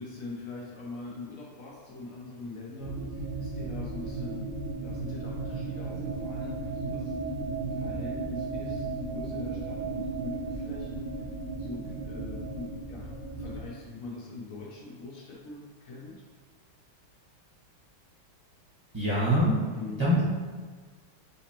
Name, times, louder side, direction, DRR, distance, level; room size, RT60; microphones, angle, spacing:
voice 1, 0.0-7.1 7.8-11.3 11.5-16.2 19.7-20.0, left 3 dB, 75° left, -4 dB, 0.7 m, -43 dB
sound 1, 2.8-13.6, right 3 dB, 80° right, 0.7 m, -35 dB
voice 2, 18.9-19.7 20.0-20.2, equal, 20° right, -10 dB, 0.7 m, -24 dB
6.2 x 3.0 x 2.9 m, 1.5 s
omnidirectional pair, 2.3 m